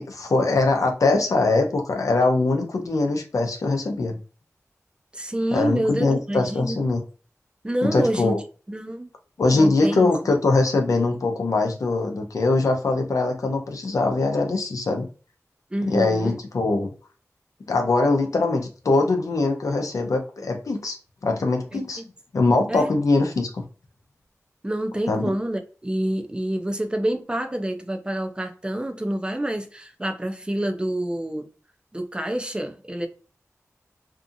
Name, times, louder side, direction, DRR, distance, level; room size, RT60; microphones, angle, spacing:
voice 1, 0.0-4.1 5.5-7.0 7.8-8.4 9.4-15.1 15.9-16.9 17.7-21.0 21.2-22.0 22.3-23.6 25.1-25.3, left 3 dB, 85° left, 0.6 m, -22 dB
voice 2, 5.1-6.8 7.6-8.3 8.7-9.1 9.5-10.1 15.7-16.4 21.7-22.0 22.7-22.9 24.6-31.5 31.9-33.1, right 1 dB, 15° right, 0.4 m, -27 dB
2.7 x 2.4 x 2.5 m
wide cardioid pair, 85°, 6 cm